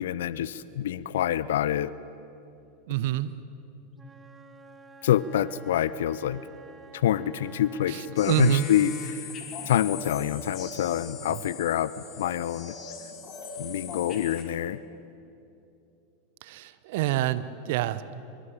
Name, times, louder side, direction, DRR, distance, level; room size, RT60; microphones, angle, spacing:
voice 1, 0.0-1.9 5.0-6.4 6.9-9.2 9.7-12.7 13.6-14.8, left 11 dB, 65° left, 18 dB, 0.7 m, -26 dB
voice 2, 2.9-3.3 7.9-8.7 11.3-11.4 16.4-18.1, right 14 dB, 60° right, 15 dB, 1.1 m, -27 dB
Wind instrument woodwind instrument, 3.9-8.9, right 5 dB, 15° right, 1.7 m, -50 dB
sound 1, 8.2-14.4, left 5 dB, 35° left, 4.7 m, -40 dB
24.5 x 24.0 x 9.1 m, 2.7 s
figure-of-eight pair, 85°, 0 cm